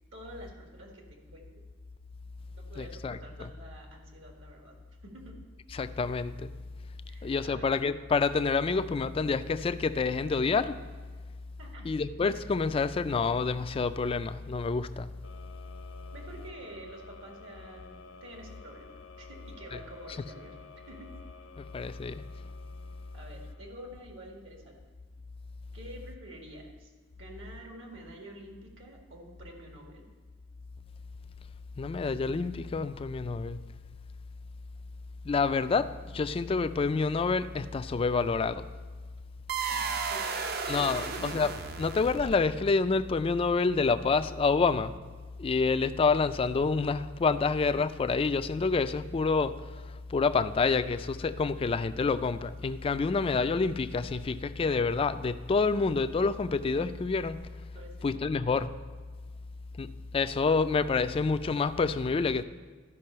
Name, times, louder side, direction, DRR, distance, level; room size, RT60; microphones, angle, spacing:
voice 1, 0.1-1.6 2.5-4.8 5.0-5.4 7.1-7.8 11.6-11.9 16.1-20.6 20.9-21.1 23.1-24.8 25.7-30.1 39.7-40.6 41.0-41.3 57.7-58.3, right 1 dB, 75° right, 1 dB, 1.8 m, -48 dB
voice 2, 2.8-3.5 5.7-6.5 7.2-10.8 11.8-15.1 21.6-22.2 31.8-33.6 35.2-38.7 40.7-41.5 41.8-45.0 45.4-49.6 50.1-57.4 58.0-58.7 59.8-62.4, left 4 dB, 30° left, 12 dB, 0.3 m, -28 dB
sound 1, 15.2-24.2, left 5 dB, 80° left, 0.7 m, -52 dB
sound 2, 39.5-42.6, right 5 dB, 50° right, 0.6 m, -34 dB
12.0 x 5.4 x 5.5 m, 1.5 s
head